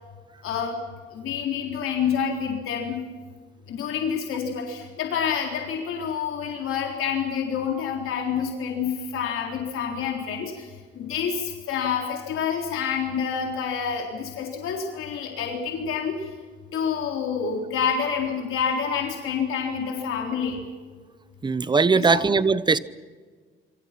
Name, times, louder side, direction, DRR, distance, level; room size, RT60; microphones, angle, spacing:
voice 1, 0.4-0.8 1.1-3.0 3.7-16.3 16.7-20.6 21.9-22.2, left 7 dB, 80° left, 1 dB, 3.9 m, -28 dB
voice 2, 21.4-22.8, right 4 dB, 20° right, 17 dB, 0.8 m, -20 dB
27.0 x 25.5 x 6.0 m, 1.5 s
cardioid pair, 130°, 21 cm